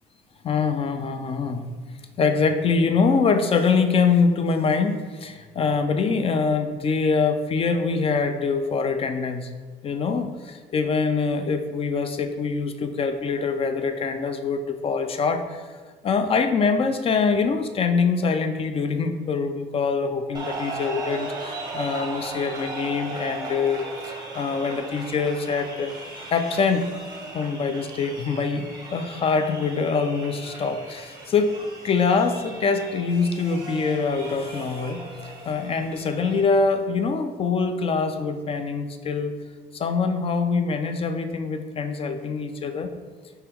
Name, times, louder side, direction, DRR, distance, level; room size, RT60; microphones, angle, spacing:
voice 1, 0.4-1.7 2.2-9.5 9.8-15.6 16.0-25.9 26.3-26.9 27.3-31.6 31.8-39.3 39.7-42.9, left 5 dB, 35° left, 8 dB, 0.4 m, -24 dB
sound 1, 20.3-36.4, right 2 dB, 25° right, 0.8 m, -37 dB
4.4 x 2.8 x 3.5 m, 1.4 s
cardioid pair, 110°, 17 cm